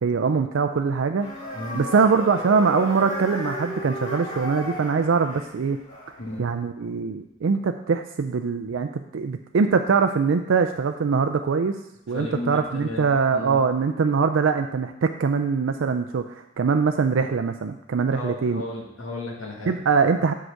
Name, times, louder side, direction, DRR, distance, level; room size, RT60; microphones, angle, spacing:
voice 1, 0.0-1.3 1.7-5.8 6.4-11.8 12.1-18.6 19.7-20.3, right 5 dB, 80° right, 7 dB, 0.4 m, -22 dB
sound 1, 1.2-6.4, equal, 30° left, 2.8 m, -34 dB
voice 2, 1.5-1.9 6.2-6.5 12.1-13.1 13.3-13.6 18.1-19.7, left 1 dB, 85° left, -1 dB, 1.9 m, -34 dB
7.8 x 4.8 x 6.3 m, 0.86 s
head